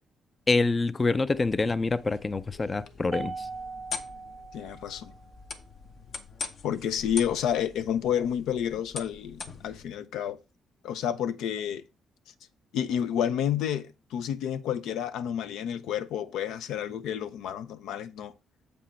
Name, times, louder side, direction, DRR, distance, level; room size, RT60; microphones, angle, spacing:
voice 1, 0.5-3.5, left 3 dB, 25° left, 0.4 m, -26 dB
sound 1, 1.3-9.8, left 4 dB, 55° left, 0.9 m, -43 dB
Mallet percussion, 3.1-5.5, right 4 dB, 45° right, 0.5 m, -40 dB
voice 2, 4.5-5.1 6.6-10.4 10.8-11.8 12.7-18.3, left 9 dB, 85° left, 0.6 m, -30 dB
7.7 x 5.3 x 4.1 m
cardioid pair, 90°, 0 cm